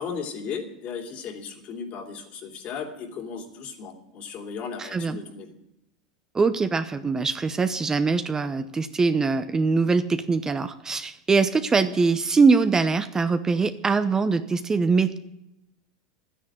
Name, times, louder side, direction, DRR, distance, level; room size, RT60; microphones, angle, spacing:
voice 1, 0.0-5.5, left 6 dB, 50° left, 3 dB, 3.0 m, -36 dB
voice 2, 4.8-5.2 6.3-15.2, right 4 dB, 20° right, 10 dB, 0.8 m, -22 dB
12.0 x 10.0 x 8.8 m, 0.87 s
hypercardioid pair, 95°, 3 cm